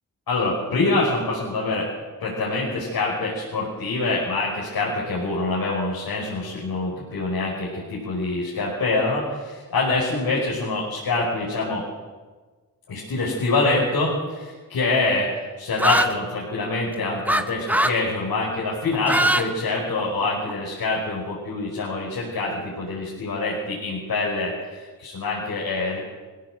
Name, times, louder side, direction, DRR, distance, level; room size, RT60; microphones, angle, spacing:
voice 1, 0.3-1.9 2.2-11.8 12.9-15.3 15.6-26.0, left 3 dB, 75° left, -4 dB, 5.3 m, -25 dB
sound 1, 15.8-16.1 17.3-17.4 17.7-18.0 18.9-19.4 19.8-20.5, right 1 dB, 5° right, 1.7 m, -20 dB
21.0 x 16.0 x 7.8 m, 1.4 s
cardioid pair, 50°, 36 cm